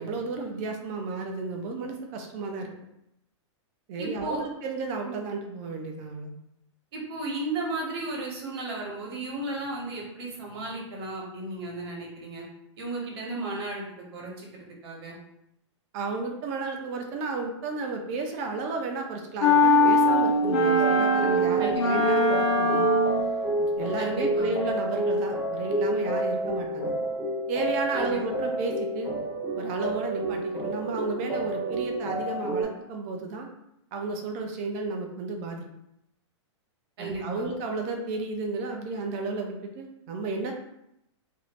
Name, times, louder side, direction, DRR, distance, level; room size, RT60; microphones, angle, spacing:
voice 1, 0.0-2.7 3.9-6.3 15.9-22.9 23.6-26.9 27.5-29.1 29.5-33.5 33.9-35.7 37.0-40.5, right 3 dB, 30° right, 3 dB, 0.4 m, -33 dB
voice 2, 4.0-4.4 6.9-12.4 12.8-13.8 14.1-15.2 21.6-22.0 24.0-24.5 27.9-28.1 37.0-37.4, right 2 dB, 55° right, -2 dB, 1.0 m, -35 dB
sound 1, 19.4-23.3, left 2 dB, 70° left, 0.8 m, -22 dB
sound 2, 19.8-32.6, right 2 dB, 5° left, 1.3 m, -28 dB
3.1 x 2.6 x 2.5 m, 0.82 s
hypercardioid pair, 160°, 16 cm